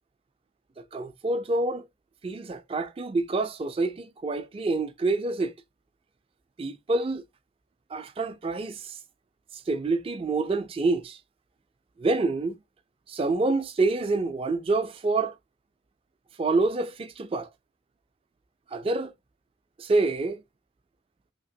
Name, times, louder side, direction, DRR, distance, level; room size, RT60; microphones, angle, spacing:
voice 1, 0.8-1.9 2.2-5.5 6.6-7.2 7.9-9.0 9.5-11.2 12.0-12.6 13.1-15.4 16.4-17.5 18.7-19.1 19.8-20.4, right 3 dB, 30° right, 0.3 m, -27 dB
2.9 x 2.8 x 2.6 m
head